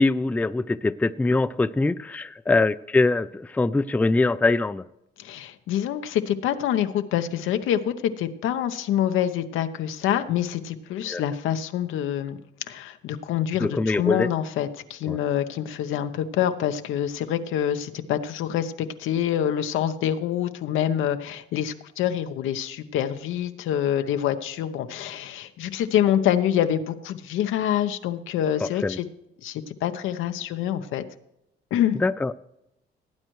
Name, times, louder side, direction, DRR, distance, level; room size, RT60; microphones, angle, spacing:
voice 1, 0.0-4.8 11.1-11.2 13.6-14.3 15.1-15.2 28.6-29.0 32.0-32.3, left 3 dB, 5° left, 14 dB, 0.4 m, -23 dB
voice 2, 5.2-12.4 12.7-29.0 29.4-31.0 31.7-32.0, left 10 dB, 85° left, 9 dB, 0.8 m, -26 dB
17.0 x 8.9 x 3.1 m, 0.84 s
cardioid pair, 90°, 20 cm